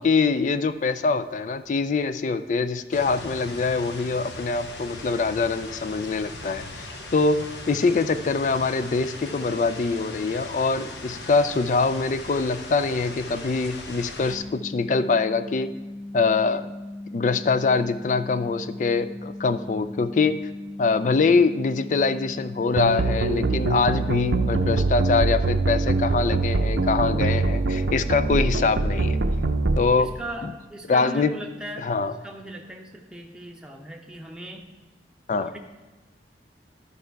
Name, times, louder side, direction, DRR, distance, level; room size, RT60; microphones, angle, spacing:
voice 1, 0.0-6.9 7.1-15.7 16.1-16.7 17.1-20.5 20.8-29.2 29.8-30.1 30.4-30.5 30.9-31.4 31.8-32.1 35.3-35.5, left 4 dB, 45° left, 12 dB, 0.3 m, -24 dB
sound 1, 2.9-14.4, left 2 dB, 75° left, 1.0 m, -39 dB
sound 2, 14.2-24.8, left 1 dB, 15° left, 2.7 m, -38 dB
sound 3, 22.8-29.8, right 3 dB, 80° right, 0.6 m, -23 dB
voice 2, 30.0-31.9 32.2-34.7 35.4-35.6, right 1 dB, 5° right, 1 dB, 0.8 m, -38 dB
12.0 x 5.5 x 4.6 m, 1.2 s
head